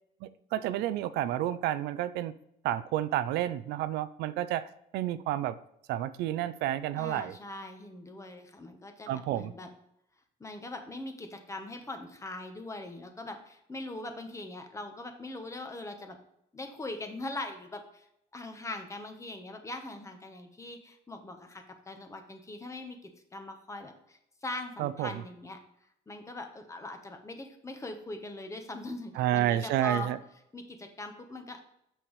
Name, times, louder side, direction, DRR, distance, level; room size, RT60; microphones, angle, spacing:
voice 1, 0.2-2.3 2.6-5.6 5.9-7.3 9.1-9.5 24.8-25.1 29.2-30.2, right 12 dB, 85° right, 15 dB, 0.4 m, -30 dB
voice 2, 7.0-9.7 10.4-16.2 16.5-18.1 18.3-25.6 26.1-30.1 30.5-31.6, left 2 dB, 20° left, 6 dB, 1.0 m, -41 dB
7.1 x 5.9 x 3.2 m, 0.78 s
cardioid pair, 110°, 17 cm